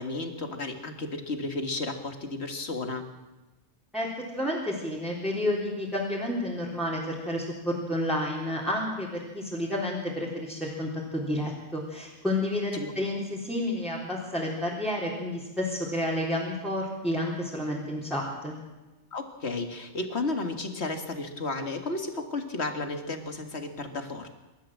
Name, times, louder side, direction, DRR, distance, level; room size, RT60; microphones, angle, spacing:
voice 1, 0.0-3.1 12.7-12.9 19.1-24.3, left 3 dB, 55° left, 6 dB, 2.3 m, -33 dB
voice 2, 3.9-18.6, left 1 dB, ahead, -5 dB, 3.7 m, -30 dB
26.5 x 13.0 x 7.6 m, 1.1 s
omnidirectional pair, 1.4 m